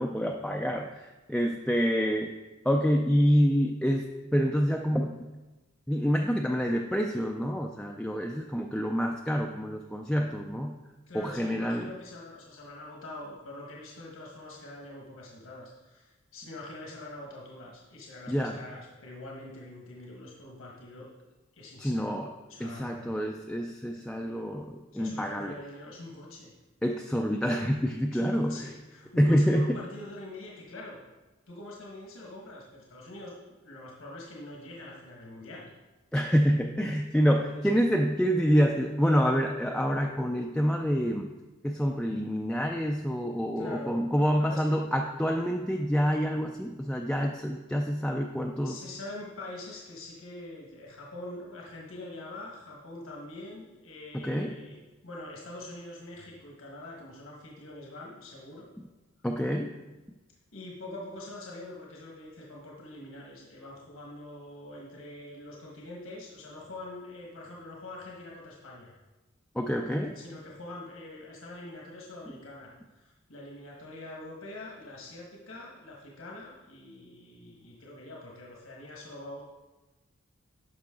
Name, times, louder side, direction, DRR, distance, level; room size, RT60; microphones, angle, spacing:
voice 1, 0.0-2.3 2.6-5.2 5.9-10.8 11.1-11.9 18.3-18.6 21.8-22.3 22.6-25.6 26.8-28.7 29.2-29.8 36.1-41.3 41.6-48.8 54.1-54.5 59.2-59.8 69.6-70.2, equal, 5° left, 2 dB, 0.3 m, -27 dB
voice 2, 11.1-21.1 21.5-22.1 22.5-23.2 24.9-26.5 28.1-31.0 31.5-35.7 37.5-37.7 43.6-44.9 48.6-54.8 55.0-58.7 60.5-68.9 70.1-79.4, left 2 dB, 80° left, -2 dB, 1.4 m, -44 dB
10.0 x 5.6 x 3.7 m, 1.1 s
head